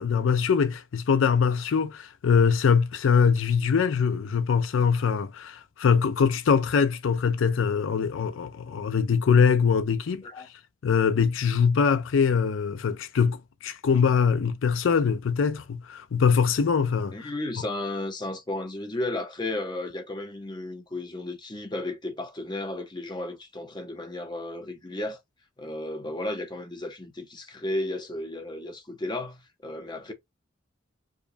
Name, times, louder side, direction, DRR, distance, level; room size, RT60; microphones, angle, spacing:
voice 1, 0.0-10.2 10.8-17.3, left 6 dB, 75° left, 0.4 m, -23 dB
voice 2, 17.1-25.2 25.6-30.1, left 1 dB, 20° left, 0.7 m, -34 dB
4.9 x 2.2 x 2.6 m
head